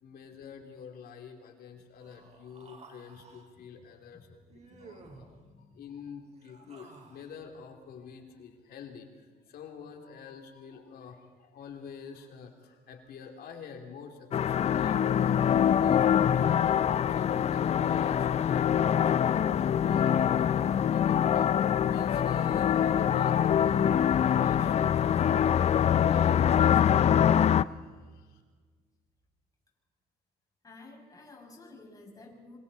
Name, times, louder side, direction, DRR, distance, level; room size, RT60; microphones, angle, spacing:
voice 1, 0.0-5.3 5.7-21.5 21.9-28.4, left 6 dB, 65° left, 4 dB, 3.0 m, -47 dB
Human voice, 2.0-3.5 4.5-5.3 6.3-7.4, right 4 dB, 40° right, 4.1 m, -54 dB
voice 2, 3.6-4.3 4.7-5.8 6.6-6.7 30.6-32.6, left 2 dB, 20° left, -1 dB, 6.4 m, -53 dB
sound 1, 14.3-27.6, left 9 dB, 40° left, 0.5 m, -24 dB
26.0 x 26.0 x 4.2 m, 1.5 s
cardioid pair, 110°, 17 cm